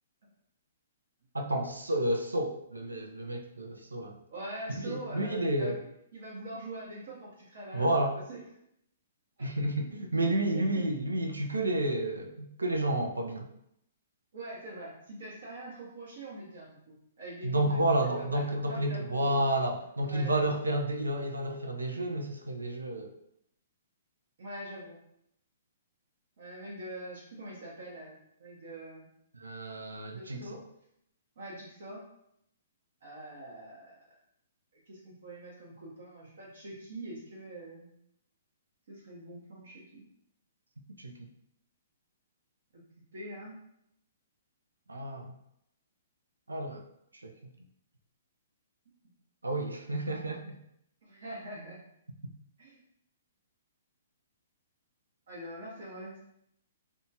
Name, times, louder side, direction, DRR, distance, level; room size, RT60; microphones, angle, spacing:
voice 1, 1.3-4.1 4.7-5.8 7.7-8.2 9.4-13.4 17.4-23.1 29.4-30.4 41.0-41.1 44.9-45.3 46.5-46.8 47.2-47.3 49.4-50.6, right 1 dB, 90° right, 3 dB, 0.4 m, -30 dB
voice 2, 4.3-5.8 6.1-8.4 10.5-10.8 14.3-19.4 20.0-20.6 24.4-25.0 26.4-29.1 30.1-30.6 31.4-32.0 33.0-34.0 34.9-37.9 38.9-40.0 42.7-42.8 43.1-43.6 51.0-51.8 52.6-52.8 55.3-56.2, right 1 dB, 65° right, -6 dB, 0.8 m, -44 dB
2.7 x 2.3 x 2.7 m, 0.75 s
figure-of-eight pair, 125°, 0 cm